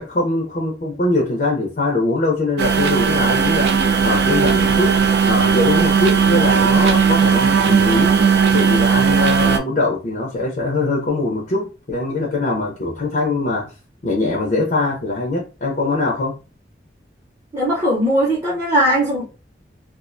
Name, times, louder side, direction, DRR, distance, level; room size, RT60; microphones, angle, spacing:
voice 1, 0.0-8.2 8.5-13.7 14.0-16.4, left 2 dB, 50° left, 0.5 m, -22 dB
sound 1, 2.6-9.6, right 6 dB, 70° right, 0.3 m, -16 dB
voice 2, 17.5-19.2, right 1 dB, 15° right, 0.6 m, -18 dB
2.3 x 2.1 x 2.5 m
head